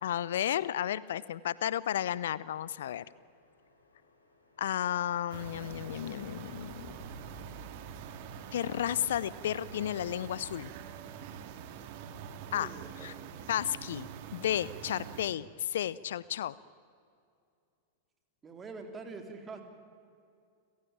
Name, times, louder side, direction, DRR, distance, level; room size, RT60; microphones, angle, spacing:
voice 1, 0.0-3.0 4.6-6.9 8.5-10.7 12.5-12.7 13.0-13.1 13.5-16.5, left 11 dB, 65° left, 20 dB, 0.5 m, -33 dB
Subway metro underground, 1.8-9.2, left 1 dB, 85° left, 5.2 m, -59 dB
sound 1, 5.3-15.3, right 8 dB, 50° right, 2.0 m, -45 dB
voice 2, 12.5-13.3 18.4-19.6, right 4 dB, 20° right, 6 dB, 3.6 m, -45 dB
30.0 x 16.5 x 9.0 m, 2.4 s
figure-of-eight pair, 90°, 0 cm